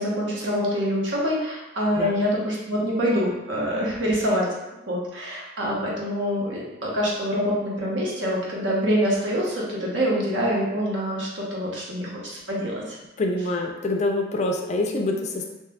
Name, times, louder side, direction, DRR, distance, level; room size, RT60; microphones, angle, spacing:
voice 1, 0.0-4.5 4.9-13.0, equal, 75° right, -4 dB, 0.9 m, -25 dB
voice 2, 13.2-15.5, left 2 dB, 35° left, 3 dB, 0.3 m, -26 dB
2.7 x 2.3 x 3.4 m, 0.98 s
head